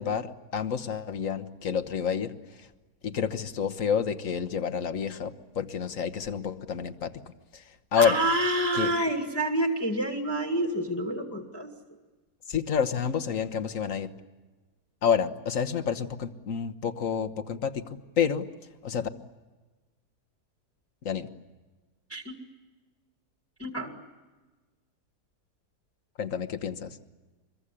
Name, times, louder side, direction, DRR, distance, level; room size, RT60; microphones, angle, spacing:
voice 1, 0.0-2.7 3.0-7.2 7.5-8.2 8.7-8.9 12.5-14.1 15.0-18.5 18.8-19.1 21.0-21.3 26.2-27.0, left 7 dB, 55° left, 10 dB, 1.5 m, -29 dB
voice 2, 8.0-11.7 22.1-22.3 23.6-24.0, right 1 dB, 10° left, 3 dB, 2.0 m, -28 dB
25.5 x 22.5 x 9.9 m, 1.3 s
omnidirectional pair, 1.7 m